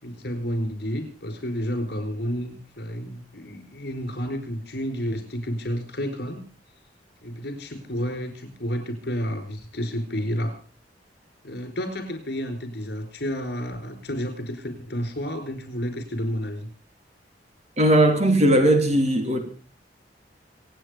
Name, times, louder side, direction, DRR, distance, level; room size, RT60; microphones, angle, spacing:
voice 1, 0.0-6.4 7.2-10.6 11.4-16.7, equal, 65° left, 4.6 m, -30 dB
voice 2, 17.8-19.4, right 1 dB, 40° right, 3.2 m, -18 dB
27.0 x 9.0 x 5.1 m
head